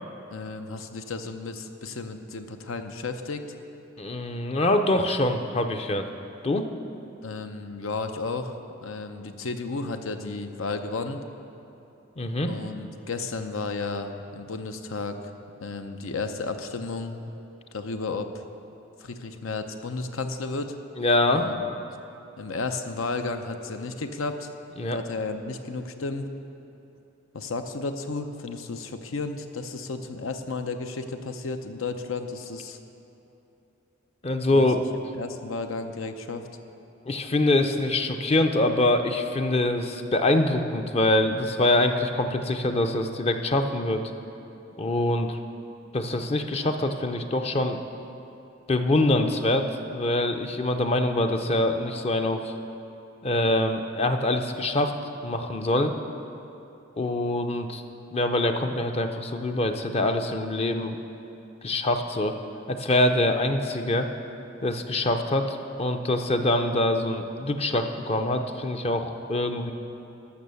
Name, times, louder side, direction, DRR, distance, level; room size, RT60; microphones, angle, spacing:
voice 1, 0.3-3.5 7.2-11.2 12.4-15.2 15.6-17.2 17.7-18.4 19.0-20.7 21.3-21.6 22.4-24.5 24.9-26.3 27.3-32.8 34.5-34.7 35.2-36.4, left 3 dB, 85° left, 7 dB, 0.7 m, -33 dB
voice 2, 4.0-6.1 6.4-6.7 12.2-12.5 21.0-21.5 24.8-25.0 34.2-34.9 37.1-44.1 44.8-45.4 45.9-47.8 48.7-52.5 53.2-54.9 55.2-56.0 57.0-57.8 58.1-61.0 61.6-62.4 62.7-64.1 64.6-69.7, left 1 dB, 30° left, 6 dB, 0.5 m, -24 dB
13.0 x 6.2 x 6.9 m, 2.9 s
head